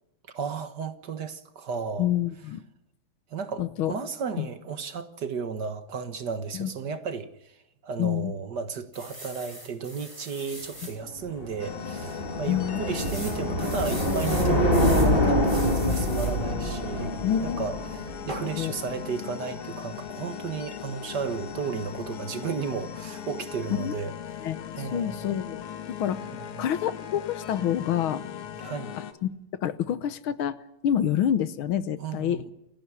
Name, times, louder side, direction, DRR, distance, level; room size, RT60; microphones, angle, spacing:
voice 1, 0.3-2.1 3.3-7.6 7.8-25.3 26.3-26.7 28.6-28.9 32.0-32.5, right 5 dB, 55° right, 1.8 m, -34 dB
voice 2, 2.0-2.6 3.6-3.9 4.4-4.5 6.5-6.7 8.0-8.3 12.5-12.8 17.2-17.7 18.6-18.7 23.7-23.9 24.4-24.6 24.9-25.6 26.0-26.3 26.6-28.2 29.2-29.3 29.6-30.6 30.8-32.5, left 10 dB, 75° left, 1.7 m, -27 dB
sound 1, 8.9-11.0 11.5-11.6 11.9-12.0 13.0-15.1 15.5-16.4 18.3-18.5, right 1 dB, 15° right, 5.2 m, -40 dB
sound 2, 11.1-18.4, left 1 dB, 25° left, 2.7 m, -25 dB
sound 3, 11.6-29.1, left 9 dB, 90° left, 2.5 m, -39 dB
29.0 x 10.5 x 9.8 m
omnidirectional pair, 2.4 m